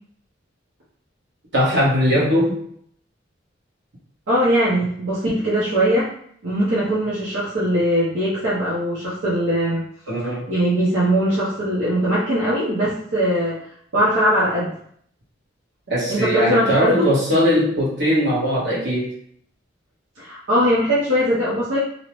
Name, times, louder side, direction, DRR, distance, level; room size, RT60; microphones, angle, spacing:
voice 1, 1.5-2.6 10.1-10.5 15.9-19.1, equal, 65° right, -5 dB, 1.1 m, -20 dB
voice 2, 4.3-6.1 6.4-9.9 10.2-13.5 13.9-14.7 16.1-17.0 20.2-21.8, equal, 90° right, -8 dB, 0.8 m, -20 dB
2.7 x 2.1 x 3.0 m, 0.64 s
head